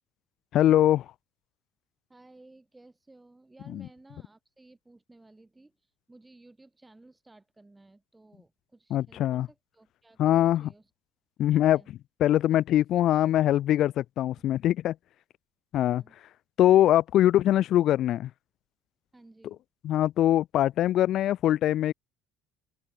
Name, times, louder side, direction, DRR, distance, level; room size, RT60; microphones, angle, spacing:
voice 1, 0.5-1.1 8.9-9.5 10.2-10.7 11.4-11.8 12.2-14.9 15.7-16.0 16.6-18.3 19.8-21.9, left 12 dB, 55° left, 0.3 m, -22 dB
voice 2, 2.1-10.9 11.5-11.9 14.4-14.5 15.8-16.2 19.1-19.6, right 2 dB, 15° right, 5.0 m, -56 dB
open air
hypercardioid pair, 70°, 0 cm